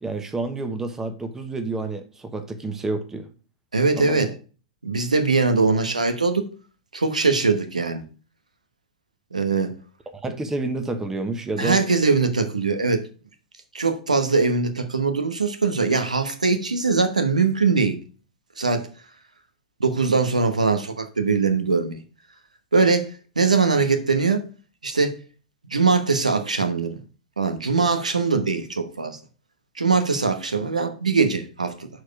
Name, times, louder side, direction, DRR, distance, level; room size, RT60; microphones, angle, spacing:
voice 1, 0.0-3.3 4.0-4.2 10.1-11.8, right 3 dB, 10° right, 1.1 m, -29 dB
voice 2, 3.7-4.3 4.8-6.4 6.9-8.0 9.3-9.8 11.6-13.0 13.7-18.0 18.6-18.9 19.8-22.0 22.7-23.1 23.4-24.5 24.8-25.2 25.7-27.0 27.4-29.2 29.8-31.9, right 4 dB, 85° right, 1.1 m, -21 dB
6.5 x 4.4 x 4.7 m
figure-of-eight pair, 100°, 4 cm